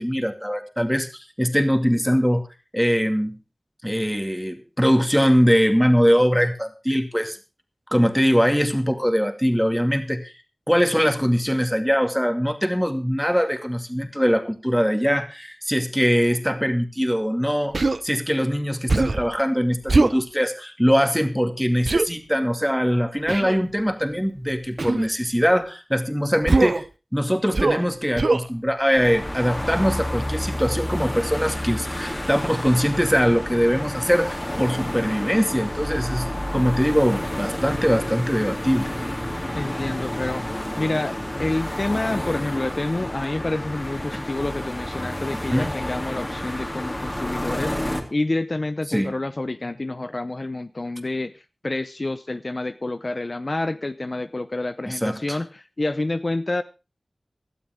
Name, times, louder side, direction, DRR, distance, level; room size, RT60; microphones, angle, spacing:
voice 1, 0.0-2.4 2.7-3.4 3.8-7.4 7.9-10.3 10.7-26.8 27.1-38.9 44.1-44.2 45.5-45.8 48.9-49.1 54.9-55.4, equal, ahead, 6 dB, 2.4 m, -22 dB
Human voice, 17.7-18.0 18.9-19.3 19.9-20.2 21.9-22.1 23.3-23.6 24.8-25.1 26.5-26.9 27.5-27.9 28.2-28.5, right 3 dB, 75° right, 0.6 m, -20 dB
sound 1, 28.9-48.0, left 1 dB, 20° left, 3.3 m, -30 dB
voice 2, 39.5-40.4 40.8-56.6, left 2 dB, 50° left, 12 dB, 0.7 m, -28 dB
17.5 x 12.5 x 3.6 m, 0.29 s
wide cardioid pair, 45°, 0 cm